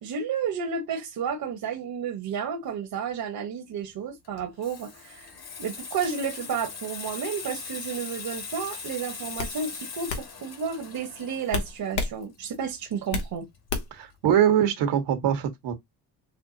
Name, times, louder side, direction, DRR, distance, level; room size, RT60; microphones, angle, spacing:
voice 1, 0.0-5.3 5.6-13.4, right 6 dB, 55° right, 1.2 m, -32 dB
Water tap faucet / Sink (filling or washing), 4.2-13.6 13.8-14.1, left 5 dB, 60° left, 2.2 m, -40 dB
sound 1, 8.6-8.8 9.4-9.6 10.1-10.3 11.5-12.2 12.5-13.3 13.7-14.1, left 4 dB, 85° left, 1.3 m, -30 dB
voice 2, 13.9-15.7, right 9 dB, 80° right, 1.5 m, -23 dB
6.6 x 2.2 x 2.8 m
supercardioid pair, 65°, 41 cm